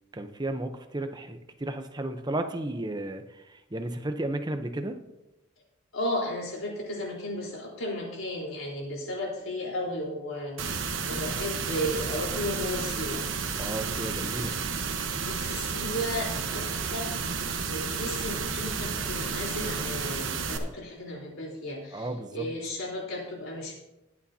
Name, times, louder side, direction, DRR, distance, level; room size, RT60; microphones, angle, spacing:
voice 1, 0.1-5.0 13.6-14.5 21.9-22.5, right 1 dB, 20° right, 7 dB, 0.8 m, -33 dB
voice 2, 5.9-13.2 15.2-17.2 17.7-23.7, left 1 dB, 70° left, -2 dB, 4.1 m, -34 dB
sound 1, 10.6-20.6, right 5 dB, 60° right, 1.2 m, -32 dB
20.5 x 8.5 x 2.8 m, 0.95 s
head